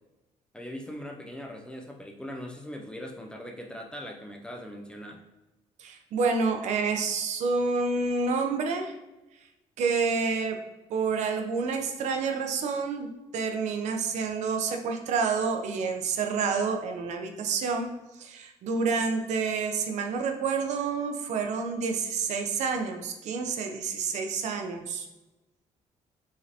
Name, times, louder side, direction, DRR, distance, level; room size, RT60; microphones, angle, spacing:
voice 1, 0.5-5.2, equal, 5° left, 1 dB, 0.3 m, -40 dB
voice 2, 5.8-8.9 9.8-10.6 10.9-17.9 18.2-25.1, right 4 dB, 70° right, 4 dB, 0.6 m, -28 dB
4.8 x 3.2 x 2.8 m, 1.0 s
cardioid pair, 170°, 13 cm